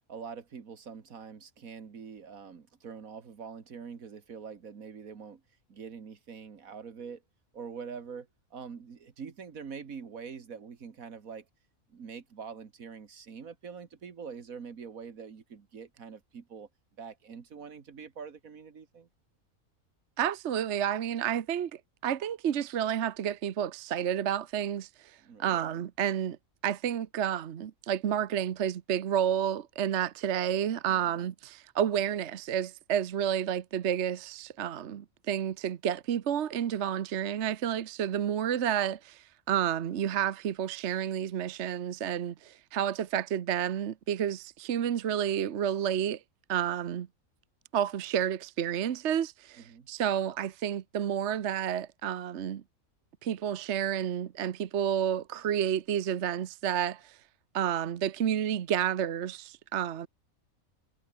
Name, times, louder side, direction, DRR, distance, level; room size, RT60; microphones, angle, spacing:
voice 1, 0.1-5.4 5.7-7.2 7.5-11.4 11.9-16.7 17.0-19.1 25.2-25.5 30.9-31.0 49.6-49.9, right 6 dB, 80° right, 2.2 m, -44 dB
voice 2, 20.2-26.4 26.6-46.2 46.5-47.1 47.7-52.6 53.2-57.2 57.5-60.1, right 9 dB, 60° right, 1.1 m, -30 dB
omnidirectional pair, 1.5 m